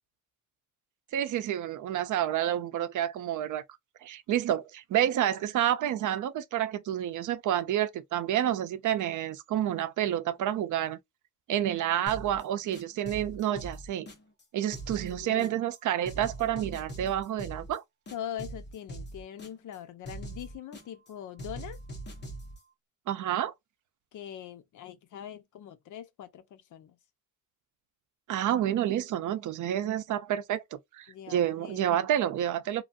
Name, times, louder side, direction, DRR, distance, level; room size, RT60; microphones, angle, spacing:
voice 1, 1.1-3.6 4.0-11.0 11.5-14.1 14.5-17.8 23.1-23.5 28.3-32.8, right 11 dB, 70° right, 0.6 m, -29 dB
sound 1, 12.1-12.4 12.7-14.4 14.7-15.8 16.0-17.8 18.1-19.8 20.0-21.1 21.4-22.6, right 1 dB, 35° left, 1.1 m, -42 dB
voice 2, 15.1-15.6 18.1-21.8 24.1-26.9 31.1-31.8, left 10 dB, 75° left, 0.7 m, -42 dB
3.0 x 2.6 x 2.5 m
wide cardioid pair, 175°, 31 cm